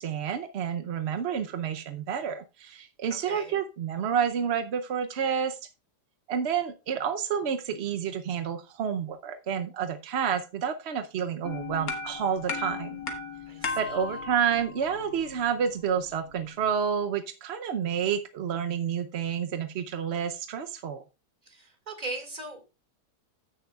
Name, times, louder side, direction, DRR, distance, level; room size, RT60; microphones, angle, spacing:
voice 1, 0.0-5.6 6.3-13.0 13.8-21.0, right 7 dB, 60° right, 8 dB, 0.7 m, -29 dB
voice 2, 3.3-3.6 13.5-14.2 21.4-22.6, right 2 dB, 25° right, 5 dB, 2.1 m, -39 dB
sound 1, 11.4-16.7, left 4 dB, 55° left, 1.9 m, -37 dB
15.5 x 6.6 x 2.3 m, 0.28 s
omnidirectional pair, 1.9 m